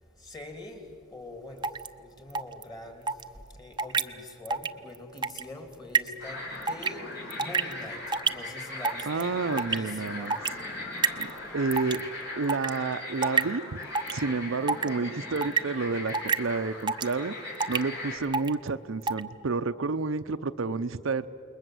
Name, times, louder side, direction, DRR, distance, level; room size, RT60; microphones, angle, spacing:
voice 1, 0.3-0.8 1.1-1.7 2.2-3.1 3.6-7.0 7.4-8.0 8.3-10.3, left 1 dB, 20° left, 4 dB, 3.0 m, -43 dB
sound 1, 1.6-1.9 2.3-2.6 3.1-3.2 3.8-4.0 4.5-4.7 4.9-5.4 5.9-6.1 6.7-6.9 7.3-7.7 8.1-8.3 8.8-9.2 9.6-9.8 10.3-10.5 11.0-11.3 11.7-12.0 12.5-12.7 13.2-13.4 13.9-14.2 14.7-14.9 15.4-15.6 16.1-16.4 16.9-17.1 17.6-17.8 18.3-18.5 19.0-19.2, right 5 dB, 25° right, 0.5 m, -26 dB
sound 2, 6.2-18.2, left 2 dB, 55° left, 5.4 m, -39 dB
voice 2, 9.0-10.4 11.2-11.3 11.5-12.0 12.4-13.8 14.1-17.3 17.7-21.3, right 4 dB, 75° right, 10 dB, 0.6 m, -30 dB
28.5 x 21.0 x 7.8 m, 2.5 s
head